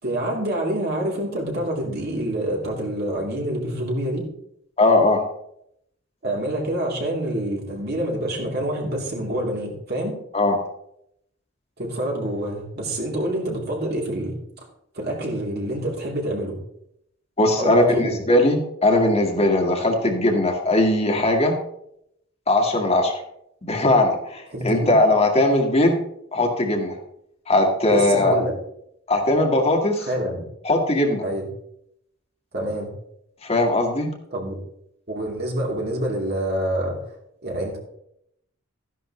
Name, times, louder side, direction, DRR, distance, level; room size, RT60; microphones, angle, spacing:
voice 1, 0.0-4.3 6.2-10.1 11.8-14.4 14.9-16.6 17.6-18.2 24.5-25.0 27.9-28.5 30.0-30.4 31.2-31.5 32.5-32.9 34.3-34.6 35.1-37.0 37.4-37.8, right 1 dB, 55° right, -1 dB, 3.4 m, -26 dB
voice 2, 4.8-5.3 10.3-10.6 17.4-21.6 22.5-23.2 23.7-26.0 26.3-26.9 27.5-28.3 29.1-30.1 30.6-31.2 33.4-34.1, left 2 dB, 30° left, 1 dB, 1.9 m, -19 dB
14.0 x 11.0 x 3.2 m, 0.74 s
head